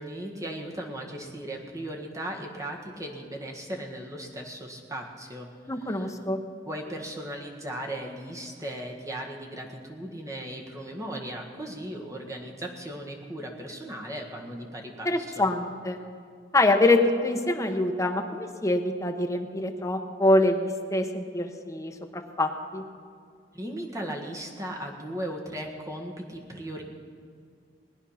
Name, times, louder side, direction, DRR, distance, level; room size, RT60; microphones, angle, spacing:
voice 1, 0.0-5.5 5.8-6.1 6.7-15.5 23.5-26.8, right 1 dB, 20° right, 0 dB, 1.7 m, -37 dB
voice 2, 5.7-6.4 15.0-16.0 16.5-22.8, left 2 dB, 15° left, 3 dB, 1.0 m, -25 dB
20.0 x 9.9 x 5.8 m, 2.2 s
head